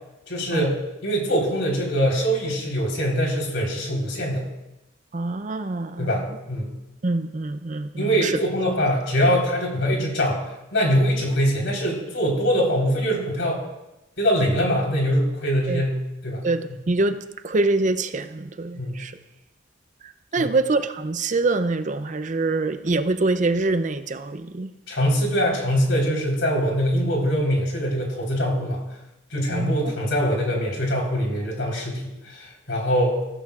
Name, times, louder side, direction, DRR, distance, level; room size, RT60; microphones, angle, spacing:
voice 1, 0.3-0.7 1.0-4.4 6.0-6.7 8.0-10.4 10.7-13.6 14.2-16.0 16.2-16.4 18.7-19.0 20.4-20.5 24.9-28.8 29.3-33.2, equal, 75° left, -2 dB, 4.1 m, -23 dB
voice 2, 5.1-6.2 7.0-8.4 15.7-15.8 16.4-17.2 17.4-19.2 20.0-24.7 29.5-29.9, right 3 dB, 40° right, 11 dB, 0.5 m, -25 dB
15.0 x 14.0 x 2.5 m, 0.97 s
head